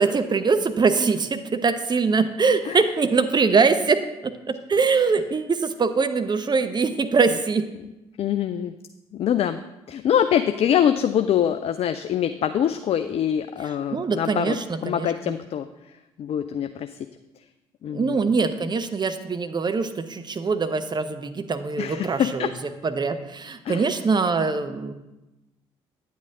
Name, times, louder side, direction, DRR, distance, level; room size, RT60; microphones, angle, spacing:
voice 1, 0.0-7.6 13.9-15.3 17.9-22.5 22.8-24.9, right 4 dB, 30° right, 9 dB, 0.8 m, -23 dB
voice 2, 8.2-8.7 9.1-9.6 9.9-14.6 14.8-16.9 17.8-18.3 21.8-22.5 23.6-23.9, left 9 dB, 45° left, 10 dB, 0.4 m, -24 dB
9.3 x 8.4 x 3.6 m, 0.99 s
figure-of-eight pair, 45°, 14 cm